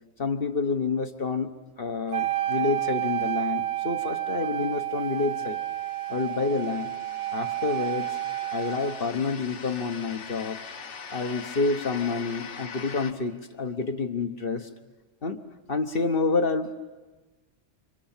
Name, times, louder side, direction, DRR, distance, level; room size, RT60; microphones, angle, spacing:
voice 1, 0.2-5.6 6.1-6.9 7.3-8.2 8.5-10.6 11.1-14.7 15.2-15.4 15.7-16.8, left 4 dB, 50° left, 6 dB, 1.4 m, -28 dB
Wind instrument woodwind instrument, 2.1-9.1, right 13 dB, 75° right, 1.8 m, -30 dB
sound 1, 4.7-13.1, left 6 dB, 75° left, 1.5 m, -43 dB
29.5 x 26.0 x 7.4 m, 1.2 s
omnidirectional pair, 1.2 m